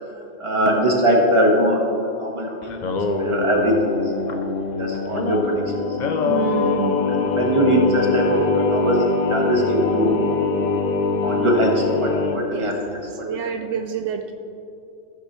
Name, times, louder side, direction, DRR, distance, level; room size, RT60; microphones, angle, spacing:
voice 1, 0.4-1.8 2.2-2.9 3.2-4.5 4.8-5.9 7.1-9.0 9.3-10.2 11.2-12.7, right 1 dB, 25° right, -1 dB, 1.4 m, -21 dB
Singing, 2.6-12.4, left 4 dB, 50° left, 0.6 m, -23 dB
voice 2, 6.2-7.0 12.4-12.7 13.3-14.3, right 7 dB, 80° right, 6 dB, 0.9 m, -27 dB
15.0 x 7.3 x 3.1 m, 2.7 s
omnidirectional pair, 1.2 m